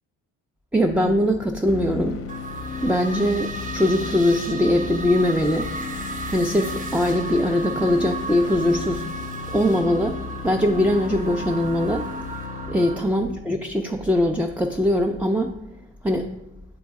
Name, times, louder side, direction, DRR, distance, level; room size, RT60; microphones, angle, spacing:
voice 1, 0.7-2.2 2.8-5.7 6.3-9.1 9.5-10.2 10.4-12.1 12.7-15.5 16.0-16.3, left 1 dB, 5° right, 3 dB, 0.3 m, -21 dB
sound 1, 1.7-13.6, left 5 dB, 40° left, 0.6 m, -35 dB
sound 2, 2.3-13.0, right 3 dB, 25° right, 0.7 m, -35 dB
7.2 x 3.9 x 3.5 m, 0.91 s
cardioid pair, 90°, 34 cm